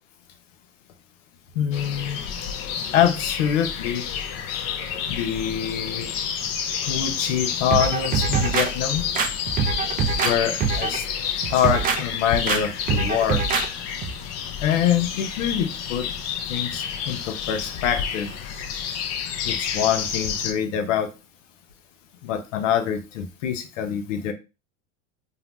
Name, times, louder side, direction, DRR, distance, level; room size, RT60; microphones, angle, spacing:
voice 1, 1.6-2.2 2.9-4.0 5.1-6.1 6.8-9.1 10.1-11.0 11.5-13.4 14.6-16.1 16.5-18.3 19.4-21.1 22.2-24.3, left 9 dB, 85° left, 6 dB, 0.7 m, -25 dB
sound 1, 1.7-20.5, left 8 dB, 45° left, 0.5 m, -30 dB
sound 2, 7.7-8.7 9.1-10.3 10.6-11.0 11.4-12.0 12.5-12.6 12.9-13.6 14.0-14.1, right 6 dB, 25° right, 0.4 m, -23 dB
2.7 x 2.0 x 3.1 m, 0.28 s
hypercardioid pair, 105°, 37 cm